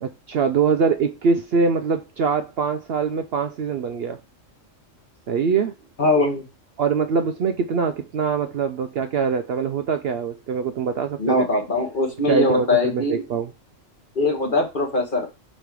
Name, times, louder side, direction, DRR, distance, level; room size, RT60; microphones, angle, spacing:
voice 1, 0.0-4.2 5.3-5.7 6.8-11.4 12.2-13.5, right 5 dB, 60° right, 0.7 m, -23 dB
voice 2, 6.0-6.4 11.2-13.2 14.2-15.3, left 2 dB, 40° left, 1.6 m, -21 dB
5.2 x 4.3 x 4.7 m
omnidirectional pair, 1.4 m